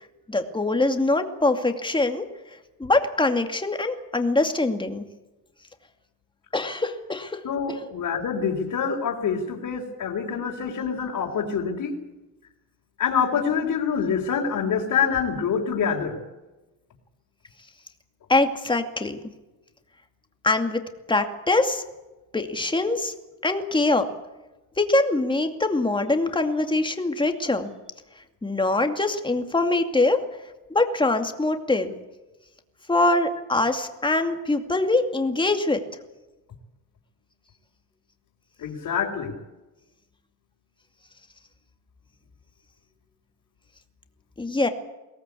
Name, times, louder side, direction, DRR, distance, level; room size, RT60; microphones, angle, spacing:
voice 1, 0.3-2.3 2.8-5.0 6.5-7.4 7.7-7.8 18.3-19.2 20.4-21.8 22.3-23.1 23.4-24.1 24.8-27.7 28.4-30.2 30.7-31.9 32.9-35.8 44.4-44.7, left 2 dB, 10° left, 6 dB, 2.4 m, -23 dB
voice 2, 7.4-12.0 13.0-16.1 38.6-39.3, left 6 dB, 55° left, -3 dB, 4.1 m, -26 dB
23.0 x 18.5 x 8.4 m, 1.1 s
cardioid pair, 135°, 38 cm